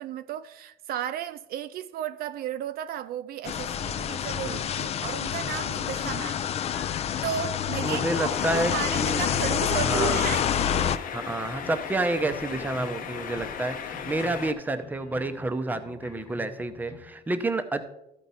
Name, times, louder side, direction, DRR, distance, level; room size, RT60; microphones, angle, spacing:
voice 1, 0.0-6.6 7.2-10.5, right 10 dB, 65° right, 0.4 m, -34 dB
sound 1, 3.4-11.0, left 9 dB, 40° left, 0.4 m, -28 dB
sound 2, 5.4-8.3 8.7-11.0 11.2-17.0, left 3 dB, 15° left, 1.0 m, -46 dB
voice 2, 7.8-9.2 9.8-10.3 11.1-17.8, right 2 dB, 10° right, 0.6 m, -29 dB
sound 3, 8.3-14.5, left 7 dB, 55° left, 0.8 m, -37 dB
13.5 x 4.5 x 4.0 m
cardioid pair, 130°, 17 cm